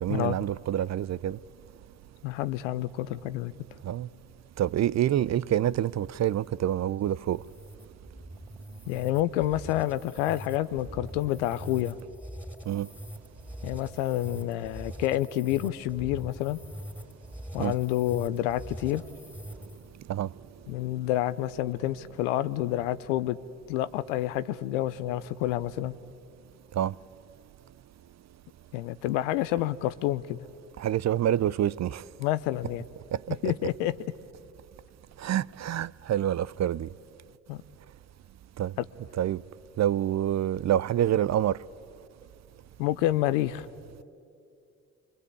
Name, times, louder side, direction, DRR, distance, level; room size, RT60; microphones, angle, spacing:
voice 1, 0.0-1.4 3.9-4.1 4.6-7.4 12.7-12.9 17.6-17.7 20.1-20.3 26.8-26.9 30.8-32.0 33.4-33.5 35.2-36.9 38.6-38.7 39.2-39.4 39.8-41.6, right 11 dB, 50° right, 0.5 m, -27 dB
voice 2, 2.2-3.5 8.9-12.0 13.6-16.6 17.5-19.0 20.7-23.4 23.7-26.0 28.7-30.4 32.2-32.8 33.4-33.9 37.5-37.6 42.8-43.7, left 14 dB, 90° left, 0.6 m, -28 dB
sound 1, 6.2-20.0, equal, 5° right, 3.4 m, -43 dB
25.0 x 23.0 x 8.3 m
hypercardioid pair, 40°, 36 cm